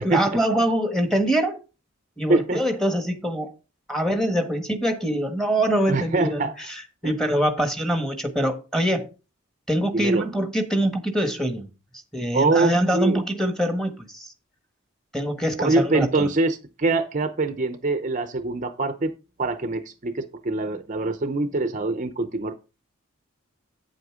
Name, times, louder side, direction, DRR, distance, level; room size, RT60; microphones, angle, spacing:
voice 1, 0.0-1.6 2.2-3.5 3.9-9.1 9.7-11.7 12.1-14.3 15.1-16.3, right 1 dB, 5° left, 1.3 m, -24 dB
voice 2, 2.3-2.6 5.9-6.5 7.0-7.1 9.9-10.3 12.3-13.2 15.6-19.1 19.4-22.5, right 3 dB, 35° right, 0.6 m, -24 dB
8.7 x 7.9 x 3.6 m
head